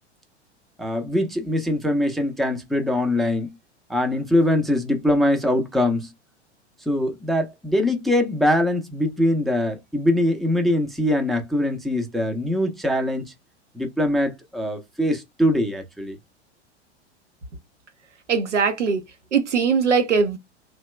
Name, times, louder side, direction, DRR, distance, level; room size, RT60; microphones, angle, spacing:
voice 1, 0.8-3.5 3.9-6.1 6.9-13.3 13.7-16.2, left 1 dB, ahead, 0.5 m, -22 dB
voice 2, 18.3-19.0 19.3-20.4, right 5 dB, 80° right, 0.8 m, -20 dB
2.8 x 2.2 x 3.2 m
figure-of-eight pair, 90°, 35 cm